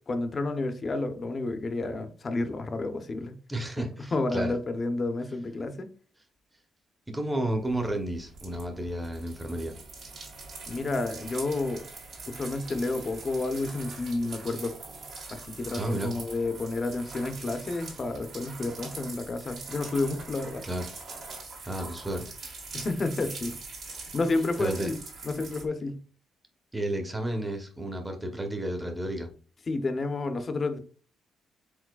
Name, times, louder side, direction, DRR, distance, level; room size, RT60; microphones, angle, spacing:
voice 1, 0.1-3.3 3.8-5.9 10.7-11.8 12.3-14.7 15.3-20.6 22.7-23.6 23.9-26.0 29.7-30.8, left 2 dB, 35° left, 0.7 m, -30 dB
voice 2, 3.5-4.5 7.1-9.8 15.7-16.1 20.6-20.9 21.6-22.3 24.6-24.9 26.7-29.3, right 1 dB, 10° right, 0.9 m, -32 dB
sound 1, 7.6-25.6, right 3 dB, 65° right, 1.8 m, -43 dB
4.8 x 3.8 x 2.3 m
cardioid pair, 90°, 0 cm